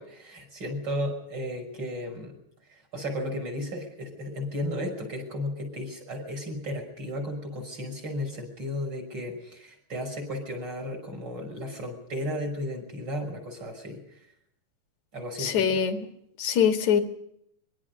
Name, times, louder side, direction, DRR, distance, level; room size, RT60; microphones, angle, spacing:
voice 1, 0.0-2.4 2.7-14.2 15.1-15.8, left 1 dB, 20° right, 4 dB, 6.3 m, -34 dB
voice 2, 15.4-16.1 16.4-17.0, left 8 dB, 55° left, 6 dB, 2.5 m, -23 dB
24.0 x 23.0 x 5.3 m, 0.74 s
omnidirectional pair, 5.4 m